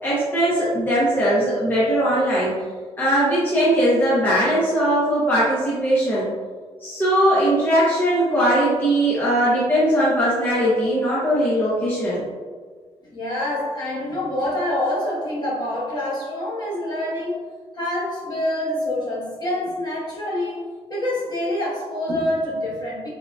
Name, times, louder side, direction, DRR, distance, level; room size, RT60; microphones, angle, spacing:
voice 1, 0.0-2.6 3.0-6.3 6.8-12.2, right 1 dB, 15° left, -9 dB, 0.9 m, -20 dB
voice 2, 13.1-17.4 17.7-20.6 20.9-23.1, left 1 dB, 40° left, -7 dB, 1.2 m, -26 dB
3.7 x 3.6 x 2.3 m, 1.5 s
wide cardioid pair, 140°, 11 cm